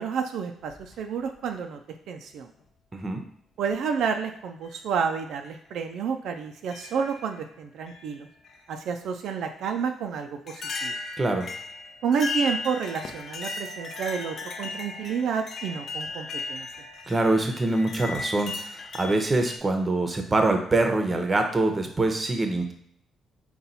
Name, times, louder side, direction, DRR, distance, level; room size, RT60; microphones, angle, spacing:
voice 1, 0.0-1.8 2.1-2.5 3.6-8.3 8.7-10.9 12.0-16.7, right 6 dB, 75° right, 5 dB, 0.3 m, -30 dB
sound 1, 0.6-1.5 2.6-2.7 3.7-4.0 4.6-4.8 5.4-5.6 6.7-7.4 7.9-8.6 9.8-9.9 10.5-19.6, left 3 dB, 50° left, 0.6 m, -36 dB
voice 2, 2.9-3.2 11.2-11.5 17.1-22.7, right 2 dB, 25° right, 5 dB, 0.7 m, -24 dB
4.1 x 2.3 x 4.0 m, 0.69 s
cardioid pair, 90°, 0 cm